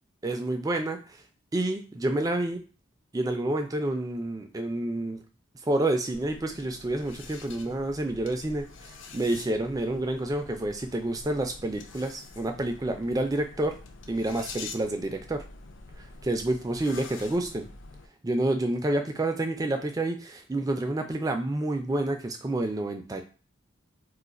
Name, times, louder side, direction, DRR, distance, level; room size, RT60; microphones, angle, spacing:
voice 1, 0.2-1.0 1.5-2.6 3.1-5.2 5.7-13.8 14.1-15.4 16.2-17.7 18.2-23.2, right 1 dB, 15° right, 5 dB, 0.3 m, -29 dB
sound 1, 6.1-18.1, left 3 dB, 65° left, 0.4 m, -46 dB
2.4 x 2.3 x 4.0 m, 0.35 s
head